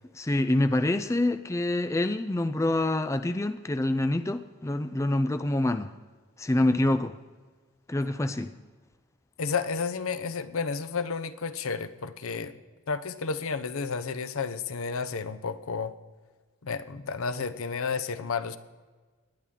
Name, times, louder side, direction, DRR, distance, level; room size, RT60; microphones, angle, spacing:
voice 1, 0.1-5.9 6.4-7.2 7.9-8.5, left 1 dB, 15° left, 10 dB, 0.4 m, -26 dB
voice 2, 9.4-12.5 12.9-15.9 16.6-18.6, left 5 dB, 80° left, 13 dB, 0.7 m, -31 dB
18.5 x 10.5 x 3.7 m, 1.4 s
head